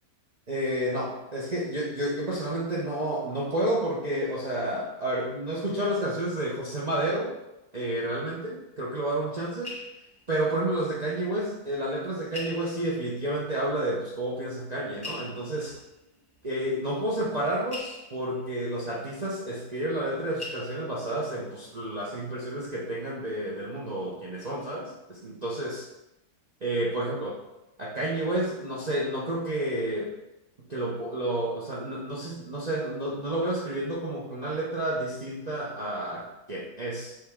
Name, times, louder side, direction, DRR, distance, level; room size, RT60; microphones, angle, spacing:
voice 1, 0.5-7.3 7.7-9.7 10.3-15.8 16.4-25.9 26.6-27.4 27.8-30.1 30.7-37.2, right 1 dB, 35° right, -5 dB, 0.7 m, -30 dB
sound 1, 9.4-11.3 11.5-11.6 12.3-13.3 14.1-14.2 14.9-20.1 20.4-21.3 21.8-22.1 22.3-22.5, left 2 dB, 20° left, 0.7 m, -44 dB
7.6 x 3.6 x 3.6 m, 0.94 s
omnidirectional pair, 1.6 m